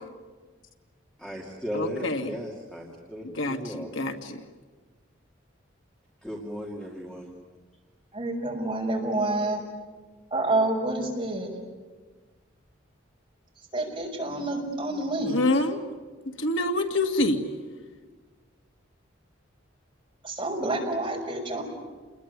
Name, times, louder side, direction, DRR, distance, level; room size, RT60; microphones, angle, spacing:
voice 1, 1.2-3.9 6.2-7.3, equal, 5° left, -2 dB, 2.5 m, -36 dB
voice 2, 1.7-2.3 3.4-4.4 15.3-15.8 16.4-17.4, left 2 dB, 75° left, 5 dB, 2.1 m, -26 dB
voice 3, 8.1-9.6 10.3-11.5 13.7-15.4 20.2-21.6, right 2 dB, 25° right, -1 dB, 5.9 m, -28 dB
29.0 x 21.0 x 9.6 m, 1.4 s
head